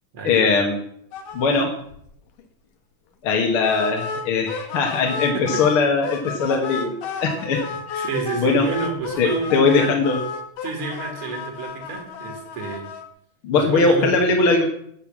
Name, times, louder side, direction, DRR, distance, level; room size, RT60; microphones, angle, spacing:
voice 1, 0.2-0.8 1.3-1.7 3.2-8.1 8.4-8.7 9.2-10.2 13.4-14.7, left 4 dB, 50° left, 2 dB, 2.0 m, -20 dB
sound 1, 1.1-1.6 1.9-2.0 2.4-2.5 3.6-5.8 6.0-13.0, left 5 dB, 85° left, 2.9 m, -32 dB
voice 2, 8.0-10.0 10.6-12.9 13.5-14.1, right 4 dB, 45° right, 1 dB, 2.6 m, -29 dB
10.5 x 8.0 x 7.3 m, 0.71 s
omnidirectional pair, 3.6 m